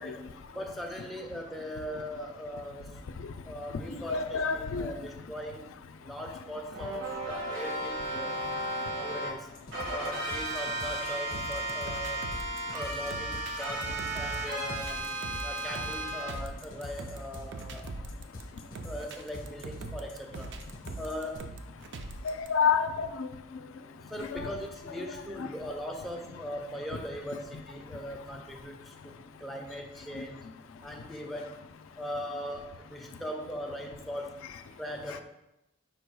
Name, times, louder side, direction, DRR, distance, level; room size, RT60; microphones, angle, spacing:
voice 1, 0.5-3.0 3.4-5.6 6.0-8.4 9.0-9.5 9.9-12.3 12.7-15.1 15.4-17.8 18.8-20.6 21.0-21.5 24.1-30.4 30.8-31.6 32.0-34.4 34.8-35.2, equal, ahead, 0 dB, 0.4 m, -40 dB
voice 2, 3.9-4.9 22.2-23.3 24.3-24.5, left 6 dB, 85° left, 8 dB, 0.4 m, -28 dB
sound 1, 6.7-9.3 9.7-16.3, right 1 dB, 75° right, 1.2 m, -34 dB
sound 2, 9.5-21.4, left 1 dB, 50° left, 0.7 m, -45 dB
sound 3, 11.3-22.5, right 3 dB, 60° right, 0.4 m, -43 dB
5.0 x 2.3 x 4.6 m, 0.89 s
head